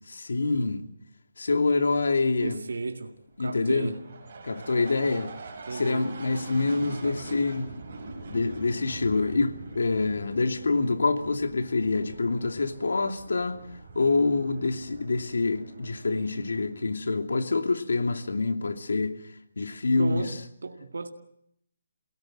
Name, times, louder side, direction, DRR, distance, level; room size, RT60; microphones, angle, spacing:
voice 1, 0.1-0.9 1.4-2.6 3.4-3.9 4.4-5.3 5.7-7.7 8.3-13.6 13.9-19.2 19.6-20.2, left 3 dB, 80° left, 2.7 m, -26 dB
sound 1, 1.4-17.4, right 3 dB, 40° right, 6.4 m, -44 dB
voice 2, 2.4-3.1 3.4-4.0 5.7-6.1 7.0-7.6 20.0-21.1, right 3 dB, 80° right, 2.1 m, -34 dB
28.5 x 18.0 x 7.7 m
hypercardioid pair, 170°, 0 cm